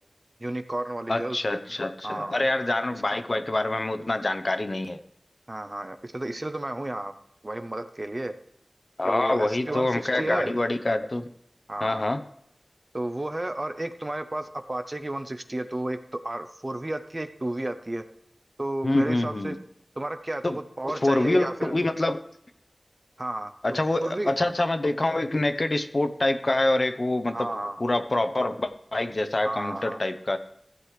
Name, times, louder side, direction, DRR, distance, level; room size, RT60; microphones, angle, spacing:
voice 1, 0.4-1.4 2.0-2.4 2.9-3.0 5.5-7.1 7.4-8.3 9.1-10.5 11.7-12.0 12.9-18.0 18.6-19.6 20.0-21.7 23.2-23.5 24.0-24.3 27.3-27.8 29.4-30.0, right 1 dB, 35° right, 8 dB, 0.7 m, -32 dB
voice 2, 1.1-5.0 9.0-11.3 11.8-12.2 18.8-19.6 20.4-20.6 21.0-22.2 23.6-27.5 27.8-30.4, left 2 dB, 50° left, 9 dB, 0.7 m, -25 dB
14.5 x 7.5 x 3.3 m, 0.75 s
wide cardioid pair, 50°, 0 cm